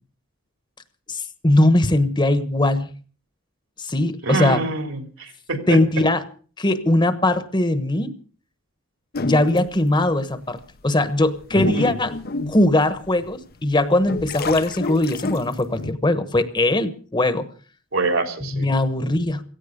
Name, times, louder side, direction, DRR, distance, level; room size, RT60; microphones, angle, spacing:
voice 1, 1.1-2.9 3.8-4.6 5.7-6.3 6.6-8.1 9.2-12.2 12.5-17.5 18.4-19.4, left 1 dB, 20° left, 12 dB, 1.1 m, -20 dB
voice 2, 4.2-5.8 11.6-11.7 17.9-18.7, right 3 dB, 70° right, 7 dB, 3.3 m, -25 dB
sound 1, 9.1-9.9 10.5-10.6 11.2-13.3 13.8-15.9, left 3 dB, 50° left, 0.7 m, -28 dB
17.0 x 16.0 x 5.2 m, 0.40 s
head